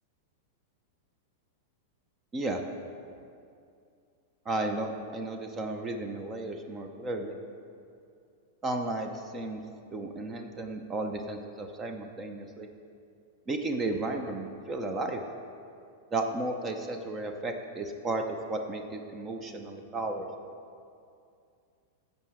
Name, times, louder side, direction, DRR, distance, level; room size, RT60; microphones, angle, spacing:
voice 1, 4.5-7.4 8.6-9.6 9.9-12.7 13.5-15.2 16.1-20.5, right 2 dB, 25° right, 5 dB, 0.8 m, -34 dB
15.0 x 5.4 x 4.9 m, 2.4 s
hypercardioid pair, 95°, 0 cm